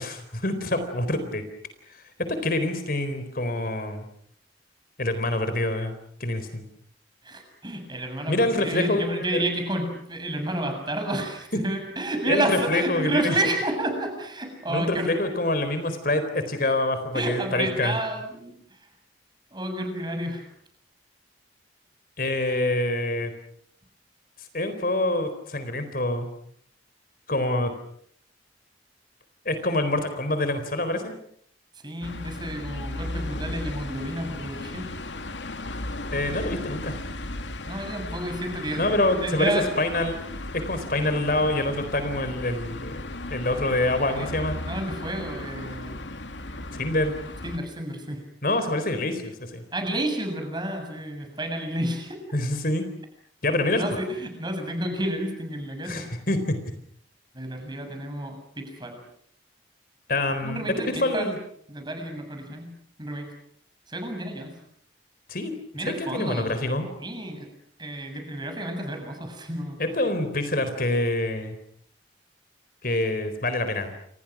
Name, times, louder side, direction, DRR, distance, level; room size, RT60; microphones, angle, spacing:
voice 1, 0.0-1.4 2.3-4.0 5.0-5.9 6.2-6.6 8.3-9.4 12.3-13.4 14.7-18.0 22.2-23.3 24.5-26.3 27.3-27.7 29.5-31.2 36.1-36.9 38.8-39.5 39.8-40.2 40.5-43.0 43.3-44.6 46.7-47.1 48.4-49.6 52.3-52.8 53.4-53.9 55.8-56.6 60.1-60.6 61.0-61.3 65.3-65.6 66.0-66.9 69.8-71.6 72.8-73.9, left 2 dB, 50° left, 9 dB, 4.0 m, -26 dB
voice 2, 7.2-15.1 17.1-18.9 19.5-20.5 31.8-34.9 37.6-39.0 39.2-39.7 44.1-44.3 44.7-46.0 47.4-48.2 49.7-52.2 53.7-56.1 57.3-59.0 60.4-61.3 61.7-63.3 63.9-64.6 65.7-66.5 67.0-67.5 67.8-69.8, right 1 dB, 25° right, 4 dB, 7.2 m, -30 dB
sound 1, 32.0-47.6, left 2 dB, 80° left, 2.5 m, -36 dB
29.5 x 27.5 x 6.2 m, 0.66 s
head